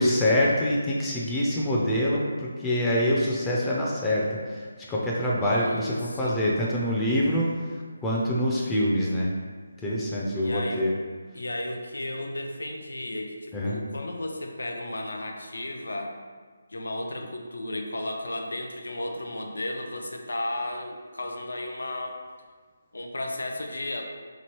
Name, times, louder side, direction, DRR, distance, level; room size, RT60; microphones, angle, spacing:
voice 1, 0.0-7.5 8.0-9.3 9.8-10.9 13.5-13.8, left 1 dB, 10° left, -5 dB, 0.3 m, -25 dB
voice 2, 5.4-6.4 10.4-10.9 11.3-16.2 16.7-22.2 22.9-24.0, left 1 dB, 85° left, 3 dB, 0.5 m, -34 dB
2.9 x 2.7 x 2.9 m, 1.6 s
figure-of-eight pair, 160°, 0 cm